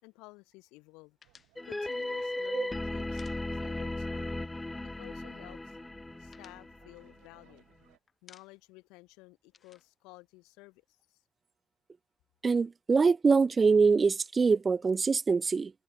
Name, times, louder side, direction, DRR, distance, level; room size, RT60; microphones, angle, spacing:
voice 1, 0.0-1.2 1.6-4.4 4.9-5.8 6.2-7.7 8.2-11.2, left 24 dB, 85° left, 4.5 m, -54 dB
sound 1, 1.2-4.0 4.3-4.4 4.7-5.4 5.8-7.7 8.1-8.8 9.1-10.9, left 6 dB, 40° left, 5.9 m, -61 dB
sound 2, 1.2-8.0, right 28 dB, 85° right, 6.8 m, -66 dB
sound 3, 1.6-7.2, left 2 dB, 15° left, 1.1 m, -37 dB
voice 2, 12.4-15.7, right 4 dB, 30° right, 0.3 m, -24 dB
supercardioid pair, 75°, 0 cm